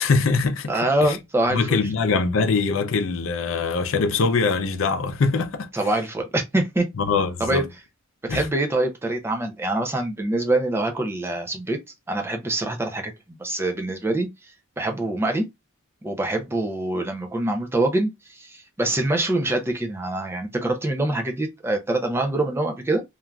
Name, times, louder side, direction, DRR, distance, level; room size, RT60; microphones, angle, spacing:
voice 1, 0.0-0.7 1.0-1.2 1.5-5.7 7.0-7.6 8.3-8.5, left 4 dB, 70° left, 0.5 m, -22 dB
voice 2, 0.7-1.8 5.7-6.9 7.4-7.6 8.2-11.8 12.1-13.1 13.4-15.4 16.0-23.0, right 2 dB, 10° right, 0.4 m, -25 dB
3.1 x 2.4 x 2.2 m
head